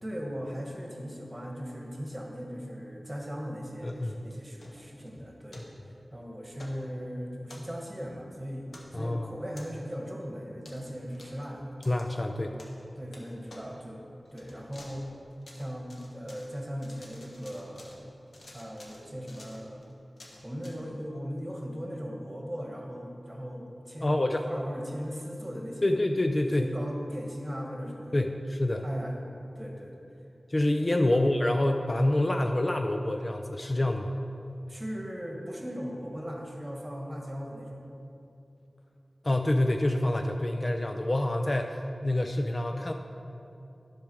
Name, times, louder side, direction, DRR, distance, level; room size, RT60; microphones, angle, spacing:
voice 1, 0.0-5.7 6.1-11.7 12.4-12.6 13.0-14.0 14.3-15.1 15.5-18.0 18.5-19.8 20.4-26.0 26.4-28.3 28.8-29.2 29.5-29.9 31.1-31.3 34.7-37.8, equal, 15° right, 0 dB, 1.4 m, -38 dB
voice 2, 3.8-4.2 8.9-9.3 11.9-12.6 24.0-24.4 25.8-26.7 28.1-28.9 30.5-34.1 39.2-42.9, left 1 dB, 35° left, 4 dB, 0.4 m, -27 dB
sound 1, 3.9-5.1 5.5-5.7 6.5-6.8 7.4-8.0 8.7-9.0 9.5-10.0 10.6-10.9 11.1-11.4 11.8-12.0 12.6-12.8 13.1-13.2 13.5-13.6 14.2-15.0 15.3-16.5 16.8-18.0 18.3-20.7, left 1 dB, 75° left, 1.4 m, -51 dB
10.5 x 4.9 x 6.2 m, 2.7 s
wide cardioid pair, 75°, 0 cm